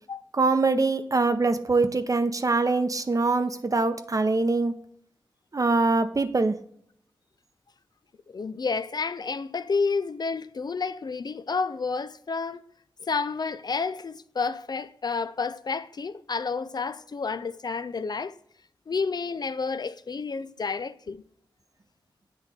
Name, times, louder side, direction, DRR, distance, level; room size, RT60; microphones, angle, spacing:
voice 1, 0.3-4.7 5.5-6.6, right 3 dB, 40° right, 0.7 m, -23 dB
voice 2, 8.3-12.6 13.0-18.3 18.9-21.2, left 4 dB, 50° left, 0.4 m, -30 dB
8.3 x 3.2 x 5.0 m
cardioid pair, 40°, 9 cm